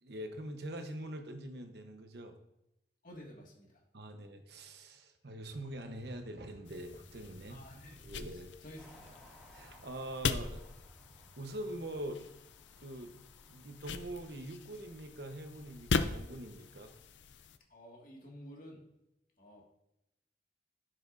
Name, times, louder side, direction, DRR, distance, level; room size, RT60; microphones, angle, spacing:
voice 1, 0.0-2.3 3.9-7.6 8.0-8.5 9.5-10.6 11.4-12.2 12.8-13.2 13.5-16.9, right 1 dB, 65° right, 6 dB, 1.0 m, -44 dB
voice 2, 3.0-3.8 7.5-8.0 8.3-9.1 17.7-18.8 19.4-19.6, equal, 50° left, -1 dB, 1.9 m, -52 dB
Vehicle, 5.5-11.8, equal, 40° right, 2.3 m, -62 dB
sound 1, 6.7-17.6, left 5 dB, 90° left, 0.5 m, -40 dB
sound 2, 8.8-17.0, equal, 5° right, 2.2 m, -63 dB
11.0 x 7.7 x 2.6 m, 0.87 s
head